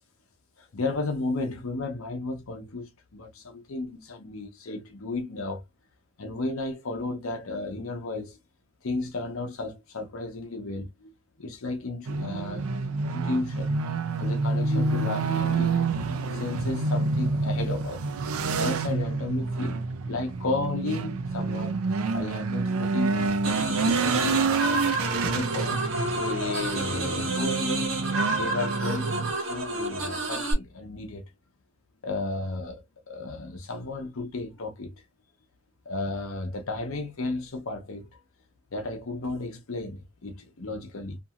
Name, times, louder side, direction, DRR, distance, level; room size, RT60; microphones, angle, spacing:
voice 1, 0.6-5.6 6.2-8.4 8.8-11.1 11.4-13.8 14.2-18.1 18.6-19.8 20.1-21.8 22.1-24.7 25.2-31.3 32.0-34.9 35.9-38.1 38.7-41.2, left 2 dB, 75° left, 0.7 m, -34 dB
sound 1, 12.1-29.3, right 3 dB, 85° right, 0.4 m, -28 dB
sound 2, 23.4-30.5, right 2 dB, 65° right, 1.2 m, -30 dB
2.8 x 2.6 x 2.4 m
head